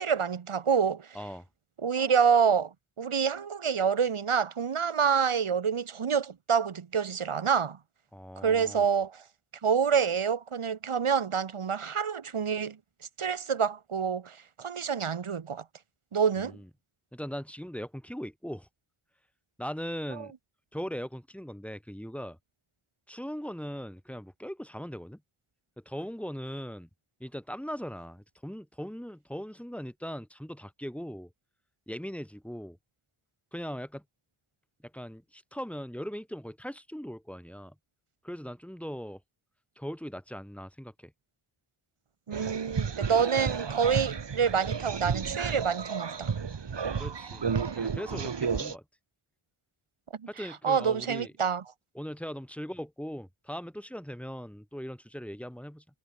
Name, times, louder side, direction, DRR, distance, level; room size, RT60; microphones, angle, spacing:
voice 1, 0.0-1.1 1.8-7.8 8.4-9.2 9.6-12.8 13.2-15.6 16.1-16.6 20.2-20.3 42.3-46.3 50.6-51.6, right 6 dB, 80° right, 3.9 m, -27 dB
voice 2, 1.1-1.5 8.1-8.9 16.4-16.7 17.1-18.7 19.6-20.3 20.7-22.4 23.1-25.2 25.8-26.9 27.2-31.3 31.9-32.8 33.5-34.0 34.9-37.7 38.2-39.2 39.8-41.1 47.0-47.5 47.7-48.8 50.3-51.3 51.9-55.8, equal, 5° left, 6.9 m, -39 dB
sound 1, 42.3-48.8, right 6 dB, 55° right, 2.3 m, -32 dB
wide cardioid pair, 80°, 49 cm